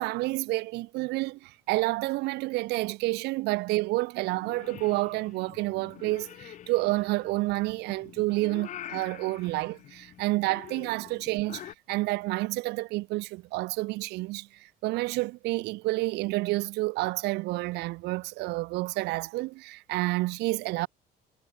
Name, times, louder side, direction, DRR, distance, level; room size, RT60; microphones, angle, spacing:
voice 1, 0.0-20.9, right 21 dB, 80° right, 0.4 m, -29 dB
Purr / Meow, 4.3-11.7, left 11 dB, 45° left, 0.6 m, -46 dB
cardioid pair, 110°, 17 cm